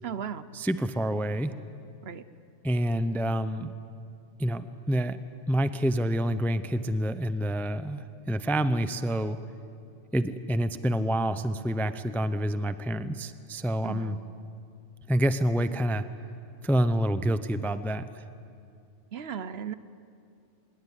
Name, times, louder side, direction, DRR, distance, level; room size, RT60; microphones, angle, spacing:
voice 1, 0.0-0.4 2.0-2.2 13.8-14.2 19.1-19.7, right 8 dB, 60° right, 13 dB, 1.0 m, -36 dB
voice 2, 0.5-1.5 2.6-3.7 4.4-5.2 5.5-9.4 10.1-14.2 15.1-16.1 16.6-18.1, equal, ahead, 12 dB, 0.5 m, -27 dB
25.0 x 20.5 x 10.0 m, 2.5 s
omnidirectional pair, 1.3 m